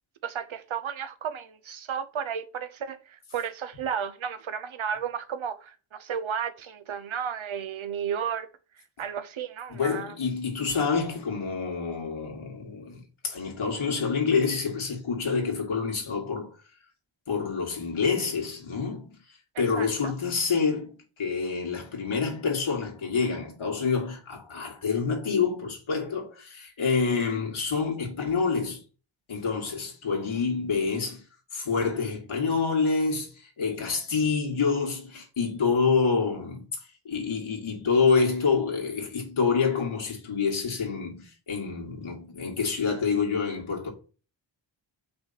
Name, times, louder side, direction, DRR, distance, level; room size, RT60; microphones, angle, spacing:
voice 1, 0.2-8.5 9.0-10.1 19.8-20.1, right 7 dB, 85° right, 0.9 m, -33 dB
voice 2, 9.7-16.5 17.3-19.2 19.6-28.8 29.3-31.2 31.5-36.7 37.0-43.9, left 5 dB, 90° left, 2.2 m, -27 dB
5.5 x 4.1 x 5.8 m
wide cardioid pair, 110°, 47 cm